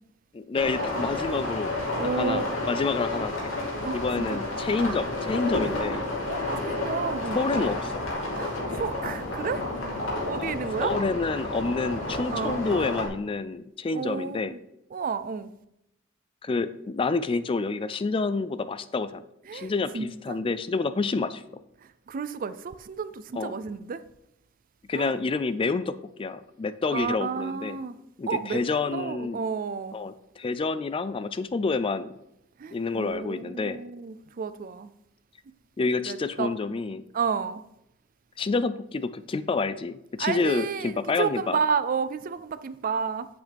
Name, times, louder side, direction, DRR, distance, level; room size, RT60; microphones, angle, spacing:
voice 1, 0.3-1.8 2.2-3.5 3.9-6.0 7.4-8.0 10.4-10.5 10.8-14.5 16.4-19.2 19.5-21.4 23.4-23.5 24.9-27.8 28.2-29.4 29.9-32.1 32.7-33.8 35.8-37.0 38.4-41.6, left 4 dB, 25° left, 0.3 m, -28 dB
sound 1, 0.5-13.1, left 2 dB, 80° left, 2.8 m, -31 dB
voice 2, 2.0-2.4 3.8-4.4 6.2-7.4 8.3-9.6 10.1-11.0 12.3-12.6 13.9-14.6 14.9-15.5 19.5-20.4 22.1-24.0 24.9-25.1 26.9-28.0 28.3-28.6 28.9-30.0 32.6-34.9 36.1-36.5 37.1-37.6 40.2-43.3, right 6 dB, 45° right, 0.4 m, -31 dB
8.7 x 8.0 x 3.5 m
head